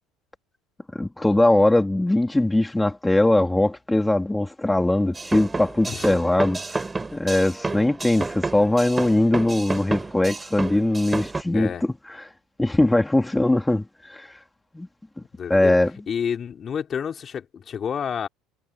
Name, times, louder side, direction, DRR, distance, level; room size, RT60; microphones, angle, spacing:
voice 1, 0.9-6.8 7.1-11.7 12.2-12.3 12.6-14.3 14.7-14.9 15.5-15.9, left 1 dB, 10° left, 3.0 m, -21 dB
sound 1, 5.1-11.4, right 3 dB, 15° right, 4.5 m, -31 dB
voice 2, 5.9-6.2 11.5-11.8 15.3-15.8 16.1-18.3, left 7 dB, 35° left, 4.2 m, -29 dB
supercardioid pair, 100°, 0 cm